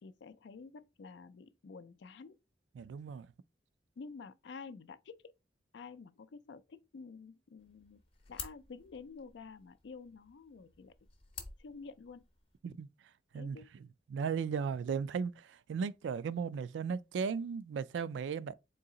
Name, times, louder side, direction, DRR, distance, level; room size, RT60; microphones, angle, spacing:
voice 1, 0.0-2.4 4.0-5.3 5.7-8.0 8.3-10.9 11.6-12.2 13.3-13.7, left 4 dB, 75° left, 0.4 m, -50 dB
voice 2, 2.8-3.3 12.6-12.9 13.3-13.6 14.1-18.5, right 6 dB, 85° right, 0.3 m, -36 dB
sound 1, 7.6-12.6, left 6 dB, 30° left, 0.7 m, -51 dB
4.0 x 2.8 x 3.7 m
head